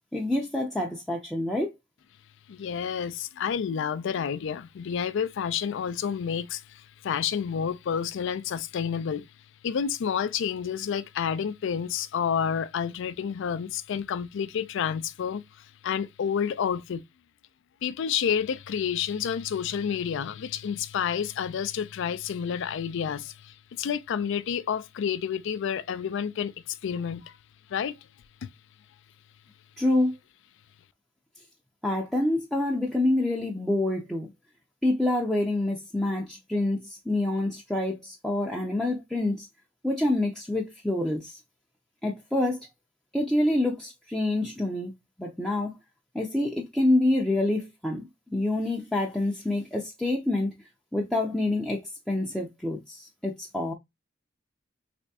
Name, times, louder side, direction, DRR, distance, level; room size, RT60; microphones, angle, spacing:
voice 1, 0.1-1.7 29.8-30.1 31.8-34.3 34.8-39.5 39.8-41.4 42.0-42.6 43.1-44.9 45.2-45.7 46.1-50.5 50.9-51.8 52.1-53.7, left 1 dB, ahead, 0.5 m, -27 dB
voice 2, 2.5-9.3 9.6-17.0 17.8-27.4 27.7-28.0 28.4-28.5, left 7 dB, 65° left, 0.4 m, -29 dB
3.4 x 3.1 x 2.7 m
head